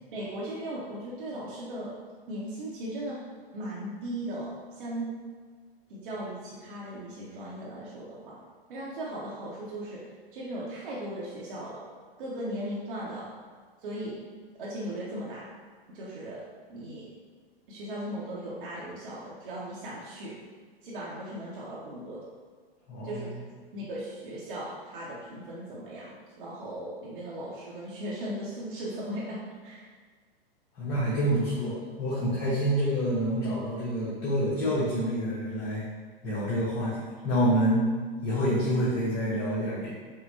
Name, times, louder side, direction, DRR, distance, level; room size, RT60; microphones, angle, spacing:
voice 1, 0.1-1.9 2.3-3.2 3.5-4.5 4.8-5.1 5.9-8.4 8.7-10.0 10.3-11.7 12.2-13.3 13.8-14.2 14.6-15.4 15.9-16.4 16.7-17.0 17.7-20.3 20.8-22.2 23.0-23.3 23.7-26.1 26.4-29.4 29.6-29.8, right 1 dB, 60° right, -7 dB, 0.9 m, -37 dB
voice 2, 22.9-23.2 30.8-35.8 36.2-37.8 38.2-39.9, equal, 35° left, -9 dB, 1.0 m, -27 dB
5.5 x 2.2 x 2.6 m, 1.5 s
figure-of-eight pair, 105°, 30 cm